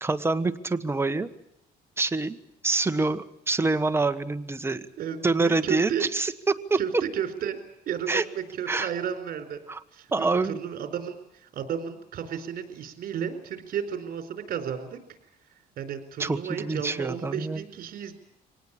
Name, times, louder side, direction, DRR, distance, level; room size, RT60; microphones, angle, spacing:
voice 1, 0.0-1.3 2.0-2.4 2.6-4.9 5.2-6.8 8.1-8.2 8.7-8.9 9.7-9.8 10.1-10.6 16.2-17.6, right 3 dB, 15° right, 8 dB, 1.3 m, -26 dB
voice 2, 5.0-6.1 6.8-7.6 7.9-9.6 9.9-15.0 15.8-18.1, right 8 dB, 60° right, 7 dB, 4.2 m, -33 dB
24.5 x 18.5 x 8.7 m, 0.83 s
cardioid pair, 110°, 17 cm